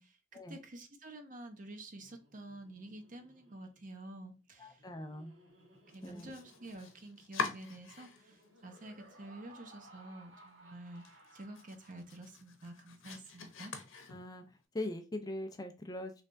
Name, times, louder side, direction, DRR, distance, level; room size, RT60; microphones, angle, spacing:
voice 1, 0.0-4.8 5.9-13.7, right 1 dB, 40° right, 0.7 m, -49 dB
Laughter, 1.9-12.3, right 1 dB, 65° right, 1.6 m, -61 dB
voice 2, 4.6-5.3 6.0-6.3 14.1-16.1, left 1 dB, 20° left, 0.4 m, -41 dB
Domestic sounds home sounds, 5.9-8.4 8.8-9.5 9.9-10.0 10.4-10.5 10.9-14.6, left 5 dB, 80° left, 0.8 m, -44 dB
3.3 x 3.2 x 2.5 m
head